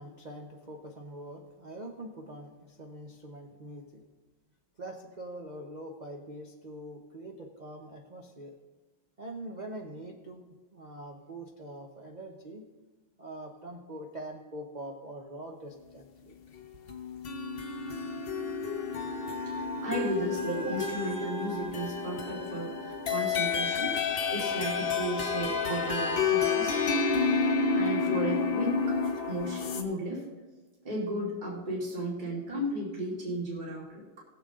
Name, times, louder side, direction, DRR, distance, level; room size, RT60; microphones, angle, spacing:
voice 1, 0.0-4.0 4.8-8.6 9.2-10.4 10.7-12.7 13.2-16.3, right 1 dB, 70° right, 2 dB, 0.4 m, -43 dB
sound 1, 16.9-29.8, left 5 dB, 80° left, 0.5 m, -30 dB
voice 2, 19.5-24.0 24.3-26.8 27.7-30.3 30.8-34.2, right 1 dB, 20° right, -5 dB, 2.8 m, -35 dB
19.0 x 7.2 x 3.8 m, 1.2 s
omnidirectional pair, 2.2 m